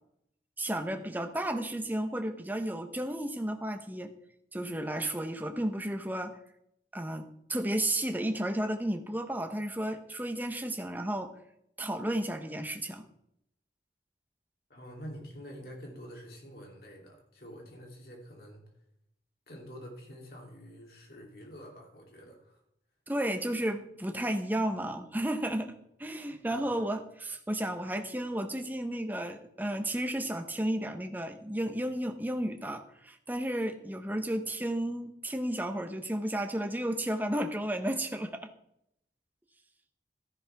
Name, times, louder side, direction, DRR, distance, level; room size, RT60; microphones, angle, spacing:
voice 1, 0.6-4.1 4.5-6.4 6.9-11.3 11.8-13.1 23.1-25.7 26.0-38.5, right 1 dB, 10° right, 6 dB, 0.8 m, -33 dB
voice 2, 14.7-18.6 19.5-22.6 26.5-26.7, equal, 60° left, 0 dB, 3.0 m, -47 dB
13.5 x 10.5 x 3.5 m, 0.77 s
head